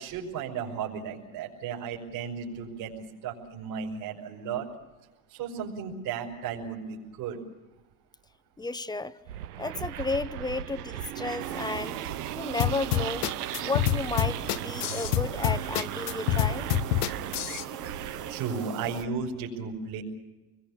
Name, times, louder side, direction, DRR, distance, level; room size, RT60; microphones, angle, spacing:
voice 1, 0.0-4.7 5.3-7.4 18.3-20.0, right 6 dB, 60° right, -3 dB, 5.4 m, -35 dB
voice 2, 8.6-9.2 9.6-12.0 12.3-13.3 13.6-16.7, left 3 dB, 10° left, 13 dB, 0.9 m, -33 dB
sound 1, 9.3-18.7, right 13 dB, 90° right, 0.8 m, -38 dB
sound 2, 11.4-19.0, right 8 dB, 40° right, 1.3 m, -40 dB
sound 3, 12.6-17.6, left 11 dB, 75° left, 1.0 m, -27 dB
27.5 x 21.5 x 7.0 m, 1.1 s
hypercardioid pair, 95°, 45 cm